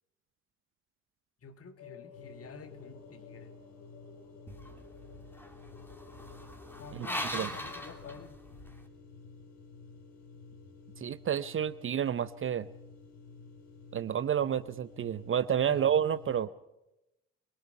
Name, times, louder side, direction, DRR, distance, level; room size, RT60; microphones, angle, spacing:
voice 1, 1.4-3.5 6.8-8.4 15.7-15.9, left 5 dB, 40° left, 8 dB, 2.0 m, -49 dB
sound 1, 1.8-8.3, left 6 dB, 55° left, 4.6 m, -54 dB
sound 2, 2.1-16.4, left 4 dB, 75° left, 2.2 m, -52 dB
sound 3, 4.5-8.8, equal, 5° left, 2.5 m, -41 dB
voice 2, 7.0-7.5 11.0-12.7 13.9-16.5, right 9 dB, 35° right, 15 dB, 0.7 m, -30 dB
24.5 x 22.0 x 5.4 m, 0.94 s
figure-of-eight pair, 45°, 36 cm